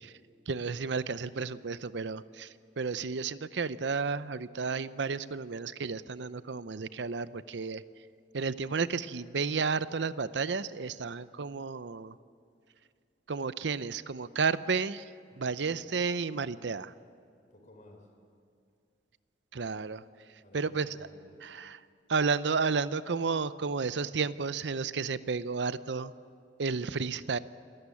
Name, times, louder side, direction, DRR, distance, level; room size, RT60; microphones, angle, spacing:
voice 1, 0.5-7.8 8.3-12.1 13.3-15.1 15.4-16.9 19.5-20.0 20.5-21.0 21.4-21.8 22.1-26.1 26.6-27.4, right 5 dB, 70° right, 15 dB, 0.6 m, -32 dB
voice 2, 15.3-15.8 17.5-18.1 20.4-21.5, left 1 dB, 45° left, 3 dB, 4.0 m, -56 dB
27.5 x 13.5 x 8.5 m, 2.4 s
head